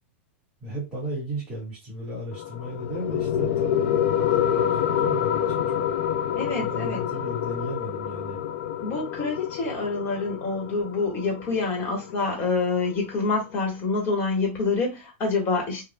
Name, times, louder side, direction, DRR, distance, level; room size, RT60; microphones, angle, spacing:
voice 1, 0.6-5.8 6.5-8.4, right 1 dB, 5° right, 2.0 m, -35 dB
sound 1, 2.3-13.3, left 9 dB, 55° left, 0.4 m, -27 dB
voice 2, 6.4-7.0 8.8-15.9, left 4 dB, 30° left, 1.5 m, -27 dB
4.8 x 2.4 x 2.2 m
supercardioid pair, 145°, 7 cm